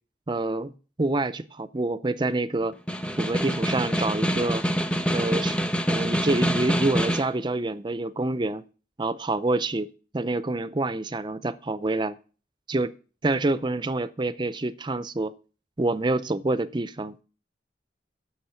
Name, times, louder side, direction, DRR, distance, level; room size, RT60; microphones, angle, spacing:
voice 1, 0.3-0.7 1.0-2.7 3.2-4.6 5.1-8.6 9.0-9.9 10.1-12.2 12.7-12.9 13.2-15.3 15.8-17.2, right 2 dB, 25° right, 0.5 m, -27 dB
Snare drum, 2.7-7.4, equal, 5° left, 0.8 m, -26 dB
10.0 x 7.1 x 6.8 m
head